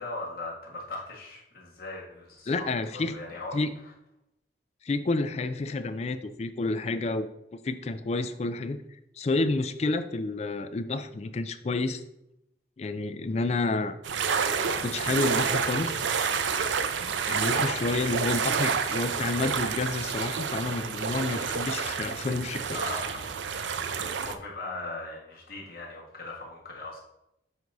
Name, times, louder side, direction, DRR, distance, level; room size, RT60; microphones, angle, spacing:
voice 1, 0.0-2.6 2.9-3.9 22.7-23.3 24.2-27.0, left 2 dB, 55° left, -3 dB, 1.5 m, -39 dB
voice 2, 2.5-3.2 3.5-3.7 4.8-7.3 7.5-8.8 9.2-12.0 12.8-13.9 14.8-16.0 17.3-22.8, left 3 dB, 35° left, 11 dB, 0.3 m, -29 dB
sound 1, 14.0-24.3, right 6 dB, 85° right, 0.5 m, -29 dB
7.7 x 2.7 x 4.6 m, 0.84 s
head